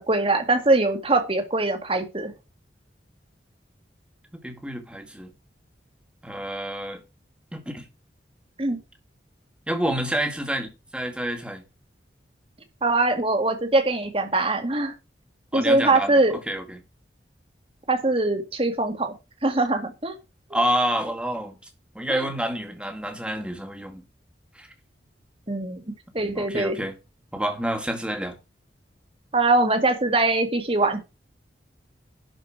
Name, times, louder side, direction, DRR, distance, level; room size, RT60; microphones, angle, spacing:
voice 1, 0.0-2.3 8.6-8.8 12.8-14.9 15.5-16.3 17.9-19.1 19.4-20.2 22.1-22.2 25.5-25.8 26.1-26.8 29.3-31.0, right 2 dB, 30° right, 2.0 m, -22 dB
voice 2, 4.3-5.3 6.2-7.0 7.5-7.8 9.7-11.6 15.5-16.8 20.5-21.5 22.0-24.0 24.6-24.7 26.2-26.9 27.3-28.4, right 1 dB, 5° right, 2.0 m, -28 dB
11.5 x 5.2 x 5.9 m
head